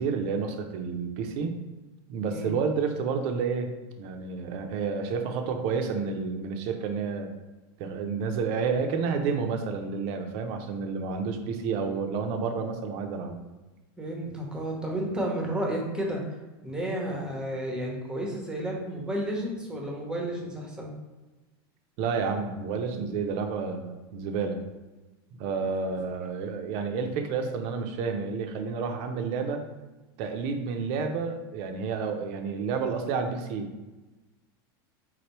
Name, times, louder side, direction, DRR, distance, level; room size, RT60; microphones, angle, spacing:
voice 1, 0.0-1.5 2.1-3.7 4.0-7.3 7.8-13.4 22.0-24.6 25.4-29.6 30.2-33.7, right 5 dB, 50° right, 5 dB, 0.5 m, -30 dB
voice 2, 14.0-16.2 16.6-20.9 25.5-25.7, right 1 dB, 5° right, -1 dB, 0.8 m, -32 dB
3.7 x 3.3 x 3.0 m, 1.2 s
supercardioid pair, 135°, 13 cm